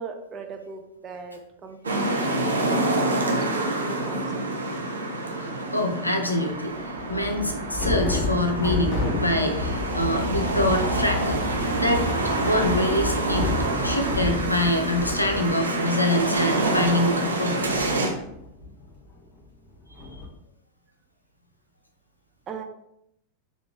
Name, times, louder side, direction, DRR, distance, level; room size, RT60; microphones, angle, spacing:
voice 1, 0.0-3.0 3.3-4.7 22.5-22.6, right 4 dB, 25° right, 4 dB, 0.4 m, -38 dB
sound 1, 1.8-18.1, right 2 dB, 75° right, 0.6 m, -27 dB
sound 2, 5.4-5.6 6.9-15.5 15.8-15.9 16.1-19.4 19.9-20.3, left 2 dB, 35° left, 1.4 m, -31 dB
voice 2, 5.7-6.7 7.1-12.1 12.4-17.9, left 1 dB, 85° left, 4 dB, 0.5 m, -25 dB
3.9 x 2.4 x 3.2 m, 0.81 s
figure-of-eight pair, 90°, 0 cm